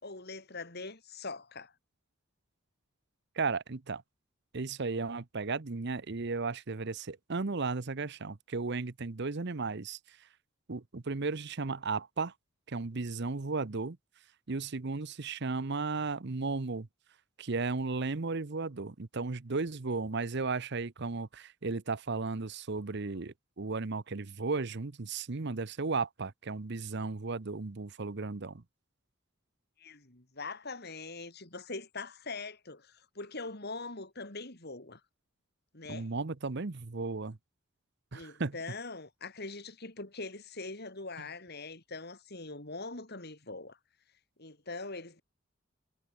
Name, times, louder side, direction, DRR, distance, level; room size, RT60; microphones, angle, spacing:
voice 1, 0.0-1.7 29.8-35.0 35.7-36.1 38.1-43.8 44.4-45.2, left 3 dB, 50° left, 4.2 m, -42 dB
voice 2, 3.4-4.0 4.5-10.0 10.7-12.3 12.7-14.0 14.5-16.9 17.4-28.6 35.9-37.4 38.1-38.6, right 3 dB, 55° right, 0.9 m, -35 dB
head